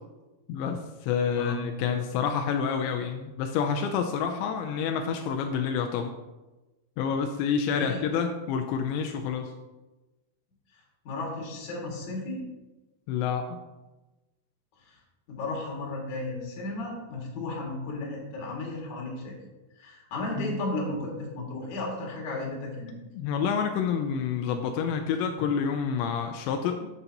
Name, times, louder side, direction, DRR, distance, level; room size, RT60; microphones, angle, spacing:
voice 1, 0.5-6.1 7.0-9.5 13.1-13.5 20.4-20.5 23.1-26.9, left 6 dB, 90° left, 5 dB, 2.5 m, -28 dB
voice 2, 7.7-8.0 11.0-12.4 14.9-15.0 15.3-19.4 19.8-22.9, left 2 dB, 50° left, -2 dB, 2.8 m, -34 dB
11.0 x 8.0 x 2.9 m, 1.1 s
omnidirectional pair, 5.8 m